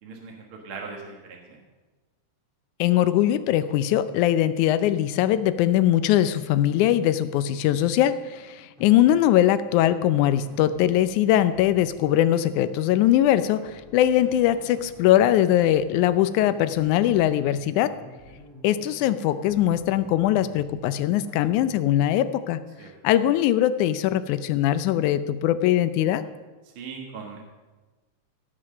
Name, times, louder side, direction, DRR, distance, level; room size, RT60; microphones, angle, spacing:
voice 1, 0.0-1.6 8.6-8.7 18.3-18.4 22.8-22.9 26.7-27.4, right 5 dB, 50° right, 0 dB, 2.0 m, -40 dB
voice 2, 2.8-17.9 18.6-22.6 23.0-26.2, left 12 dB, 85° left, 13 dB, 2.1 m, -21 dB
sound 1, 8.8-21.9, equal, ahead, 2.0 m, -50 dB
16.5 x 6.3 x 6.4 m, 1.2 s
omnidirectional pair, 3.4 m